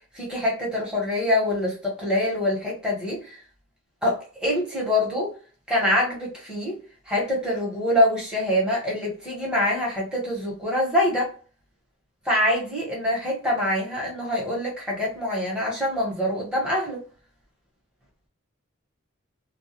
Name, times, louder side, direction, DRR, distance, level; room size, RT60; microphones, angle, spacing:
voice 1, 0.1-3.4 4.0-5.3 5.7-6.8 7.1-11.3 12.2-17.0, left 1 dB, 5° right, 1.0 m, -25 dB
2.3 x 2.2 x 2.8 m
head